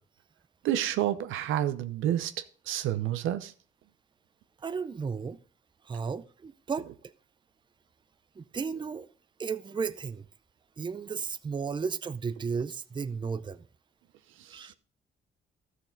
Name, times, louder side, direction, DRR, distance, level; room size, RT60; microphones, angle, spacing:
voice 1, 0.6-2.3 2.7-3.5, right 12 dB, 90° right, 0.8 m, -29 dB
voice 2, 4.6-5.4 5.8-7.1 8.4-9.1 9.4-10.3 10.8-13.7 14.5-14.7, right 5 dB, 25° right, 0.5 m, -34 dB
13.0 x 6.5 x 3.9 m
cardioid pair, 90°, 20 cm